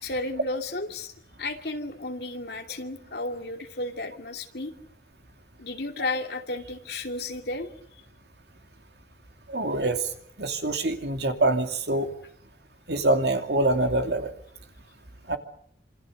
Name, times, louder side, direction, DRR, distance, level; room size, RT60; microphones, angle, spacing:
voice 1, 0.0-1.1 1.4-4.7 5.6-7.7, left 2 dB, 65° left, 5 dB, 2.7 m, -33 dB
voice 2, 9.5-10.1 10.4-12.1 12.9-14.3 15.3-15.4, right 2 dB, 70° right, 6 dB, 2.7 m, -25 dB
27.0 x 26.0 x 6.6 m, 0.67 s
head